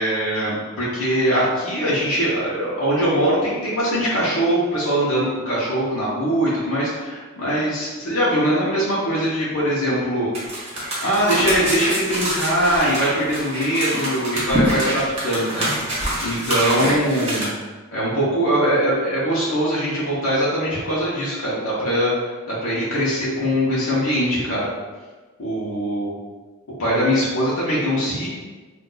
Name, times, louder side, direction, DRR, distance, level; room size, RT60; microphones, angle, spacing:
voice 1, 0.0-10.3 10.6-10.7 11.0-15.7 16.2-17.5 17.9-24.7 25.4-26.1 26.8-28.3, equal, 85° left, -8 dB, 0.8 m, -22 dB
sound 1, 10.3-17.4, right 1 dB, 30° right, 1.1 m, -25 dB
2.5 x 2.3 x 3.8 m, 1.3 s
head